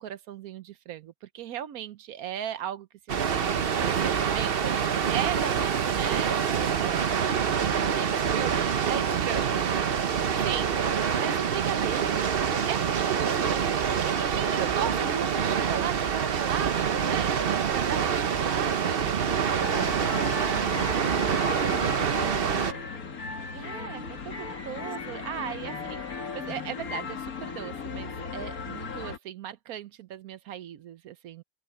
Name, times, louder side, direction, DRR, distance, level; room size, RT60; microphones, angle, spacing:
voice 1, 0.0-6.5 6.8-7.1 7.4-7.7 8.0-9.5 10.4-10.7 11.1-12.3 12.7-19.1 23.5-31.4, right 10 dB, 85° right, 1.2 m, -37 dB
Water, 3.1-22.7, right 7 dB, 45° right, 0.9 m, -26 dB
voice 2, 7.5-8.1 20.6-22.9 23.6-24.1 24.8-25.5, right 1 dB, 10° right, 2.6 m, -45 dB
sound 1, 19.6-29.2, left 5 dB, 80° left, 2.4 m, -36 dB
open air
omnidirectional pair, 1.5 m